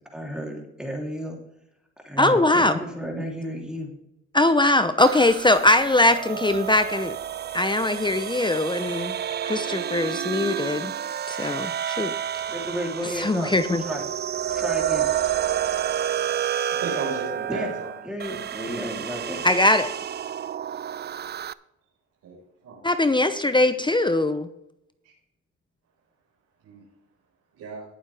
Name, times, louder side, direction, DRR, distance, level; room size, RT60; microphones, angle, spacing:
voice 1, 0.1-1.4 2.0-3.9 12.5-13.5 13.8-14.0 14.5-15.1 17.5-17.7 18.0-19.4, equal, 5° right, 0 dB, 3.1 m, -32 dB
voice 2, 2.2-2.8 4.3-7.2 7.5-9.2 9.4-10.9 11.3-12.1 13.0-13.8 19.4-19.9 22.8-24.5, left 2 dB, 15° left, 10 dB, 0.7 m, -21 dB
sound 1, 5.0-21.5, right 10 dB, 35° right, 0.4 m, -30 dB
voice 3, 16.8-17.9 22.2-22.8 26.6-26.8 27.5-27.8, right 4 dB, 85° right, -7 dB, 4.6 m, -34 dB
19.0 x 7.3 x 3.4 m, 0.83 s
cardioid pair, 90°, 30 cm